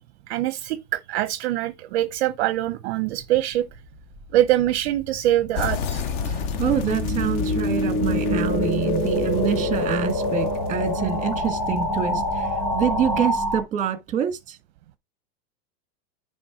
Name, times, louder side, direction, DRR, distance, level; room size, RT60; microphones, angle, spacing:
voice 1, 0.3-3.7 4.3-6.0, right 13 dB, 45° right, 0.6 m, -23 dB
sound 1, 4.3-13.6, equal, 5° left, 3.3 m, -26 dB
sound 2, 5.6-13.3, left 6 dB, 35° left, 0.6 m, -31 dB
voice 2, 6.2-14.6, right 8 dB, 15° right, 1.5 m, -26 dB
9.5 x 3.4 x 5.9 m
supercardioid pair, 160°, 45 cm